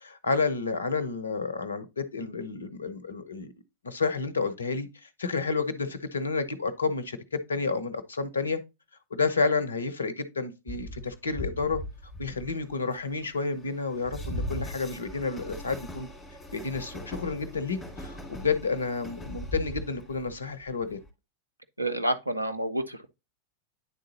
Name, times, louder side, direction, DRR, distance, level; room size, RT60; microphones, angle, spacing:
voice 1, 0.0-3.5 3.8-7.2 7.5-8.6 9.1-11.8 12.2-16.1 16.5-21.0, left 4 dB, 75° left, 0.7 m, -30 dB
Train, 10.7-21.1, left 1 dB, 15° left, 2.4 m, -39 dB
voice 2, 21.8-23.1, right 1 dB, 85° right, 0.6 m, -29 dB
9.5 x 3.8 x 2.8 m
figure-of-eight pair, 90°, 0 cm